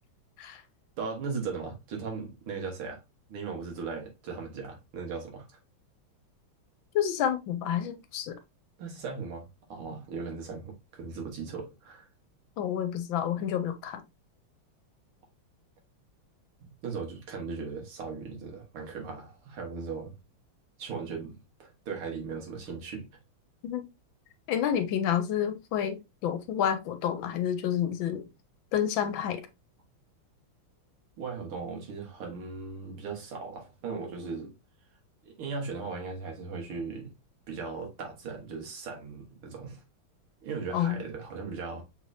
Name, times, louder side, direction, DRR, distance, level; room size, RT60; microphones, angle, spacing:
voice 1, 1.0-3.0 3.3-5.5 8.8-12.1 16.6-20.1 20.8-23.1 31.2-34.5 35.2-37.1 37.5-39.8 40.4-41.8, right 5 dB, 90° right, 2.4 m, -38 dB
voice 2, 6.9-8.4 12.6-14.0 23.6-23.9 24.5-28.2 28.7-29.4 40.7-41.0, left 9 dB, 75° left, 1.3 m, -29 dB
6.0 x 3.3 x 2.6 m
omnidirectional pair, 2.3 m